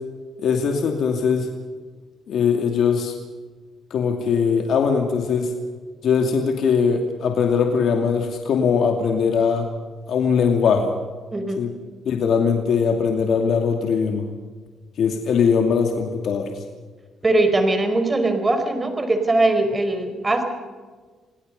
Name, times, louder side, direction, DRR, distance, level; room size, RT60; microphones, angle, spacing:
voice 1, 0.4-1.5 2.3-3.1 3.9-5.5 6.0-9.7 10.1-10.9 11.6-11.7 12.1-14.3 15.0-16.6, left 6 dB, 70° left, 3 dB, 2.6 m, -20 dB
voice 2, 11.3-11.7 17.2-20.4, right 2 dB, 25° right, 7 dB, 4.7 m, -20 dB
29.0 x 18.0 x 5.5 m, 1.4 s
cardioid pair, 90°, 0 cm